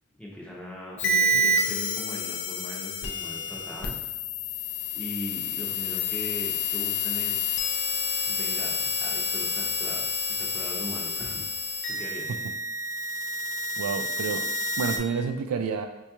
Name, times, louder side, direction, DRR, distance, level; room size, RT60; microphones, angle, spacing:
voice 1, 0.2-4.0 4.9-7.7 8.3-12.3, left 1 dB, 5° left, -4 dB, 0.6 m, -40 dB
sound 1, 1.0-15.0, left 2 dB, 55° left, 0.4 m, -29 dB
voice 2, 13.8-14.5 14.8-15.9, right 5 dB, 80° right, 6 dB, 0.3 m, -29 dB
4.5 x 2.3 x 2.8 m, 0.95 s
head